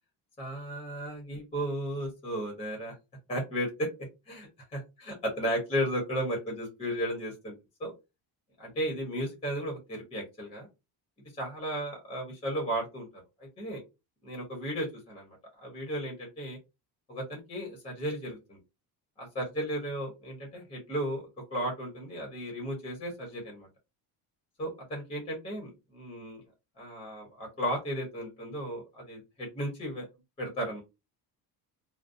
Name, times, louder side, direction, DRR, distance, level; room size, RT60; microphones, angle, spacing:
voice 1, 0.4-2.9 3.3-3.9 4.3-7.5 7.8-7.9 8.6-10.7 11.4-13.1 13.6-13.8 14.2-15.4 15.6-16.6 17.1-18.6 19.2-23.7 24.6-26.4 26.8-30.0 30.4-30.8, equal, 15° left, 0 dB, 0.8 m, -34 dB
2.5 x 2.0 x 2.5 m, 0.25 s
cardioid pair, 165°, 42 cm